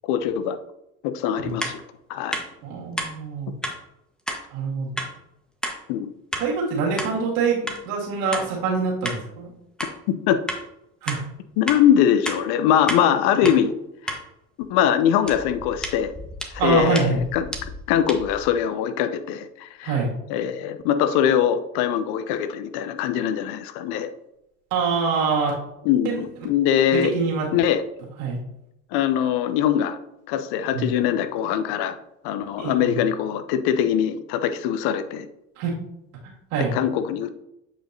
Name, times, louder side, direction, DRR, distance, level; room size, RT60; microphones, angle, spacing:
voice 1, 0.0-0.6 1.0-1.8 2.1-2.4 5.9-6.1 10.1-10.4 11.6-13.7 14.0-14.1 14.7-16.1 16.6-17.4 17.9-19.9 20.3-24.1 25.8-27.1 27.5-27.8 28.9-30.0 30.3-32.0 32.2-35.3 36.7-37.3, left 9 dB, 65° left, 10 dB, 0.8 m, -22 dB
sound 1, 1.6-1.8 2.3-2.5 3.0-3.1 3.6-3.8 4.3-4.4 5.0-5.1 5.6-5.8 6.3-6.5 7.0-7.1 7.7-7.8 8.3-8.5 9.0-9.2 9.8-9.9 10.5-10.6 11.1-11.2 11.7-11.8 12.3-12.4 12.9-13.0 13.5-13.6 14.1-14.2 15.2-18.5, equal, ahead, 1.4 m, -31 dB
voice 2, 2.6-3.5 4.5-5.0 6.4-9.5 11.0-11.2 16.6-17.2 19.8-20.1 24.7-25.5 26.0-26.2 26.9-27.5 28.2-28.4 30.7-30.9 32.6-33.0 35.6-35.7 36.2-36.7, right 4 dB, 70° right, -4 dB, 2.5 m, -25 dB
8.6 x 5.1 x 2.8 m, 0.84 s
hypercardioid pair, 65°, 41 cm